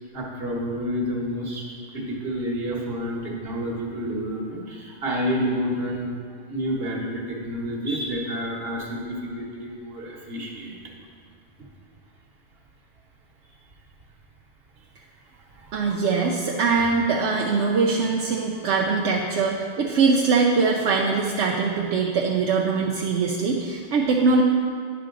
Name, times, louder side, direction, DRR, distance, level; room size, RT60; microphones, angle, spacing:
voice 1, 0.1-1.6 1.9-6.1 6.5-10.7 15.6-15.9, equal, 60° right, -2 dB, 1.4 m, -29 dB
voice 2, 15.7-24.4, right 4 dB, 80° right, 0 dB, 0.9 m, -22 dB
9.6 x 6.0 x 3.8 m, 2.1 s
omnidirectional pair, 1.2 m